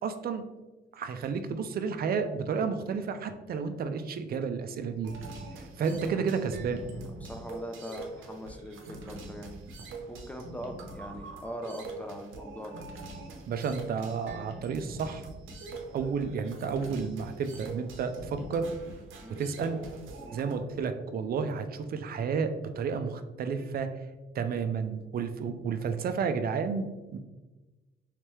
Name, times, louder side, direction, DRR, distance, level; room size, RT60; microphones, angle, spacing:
voice 1, 0.0-0.5 0.9-5.1 5.6-7.0 13.5-15.3 15.9-18.7 19.4-19.8 20.3-23.9 24.3-27.2, right 5 dB, 50° right, 8 dB, 0.4 m, -31 dB
sound 1, 5.0-20.5, right 2 dB, 80° right, 0.7 m, -43 dB
voice 2, 6.1-6.4 7.2-9.6 10.1-12.8 19.2-19.5 20.2-20.4, equal, 5° left, 4 dB, 0.5 m, -42 dB
3.3 x 3.2 x 3.0 m, 1.2 s
cardioid pair, 90°, 20 cm